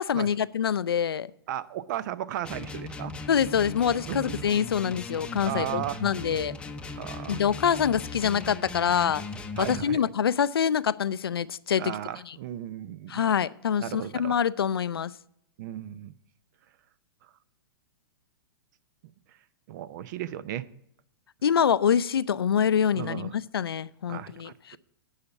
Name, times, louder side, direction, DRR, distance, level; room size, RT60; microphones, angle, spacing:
voice 1, 0.0-1.3 3.3-6.5 7.3-9.2 9.6-11.9 12.3-12.4 13.1-15.1 21.4-24.8, left 8 dB, 90° left, 0.4 m, -25 dB
voice 2, 1.5-3.1 4.1-4.5 5.4-6.0 6.9-7.4 9.6-10.1 11.7-13.2 13.8-14.4 15.6-16.2 19.7-20.7 22.9-23.4 24.1-24.8, right 12 dB, 55° right, 0.6 m, -35 dB
sound 1, 2.4-9.9, left 3 dB, 10° left, 0.7 m, -38 dB
9.7 x 5.7 x 8.0 m
hypercardioid pair, 120°, 12 cm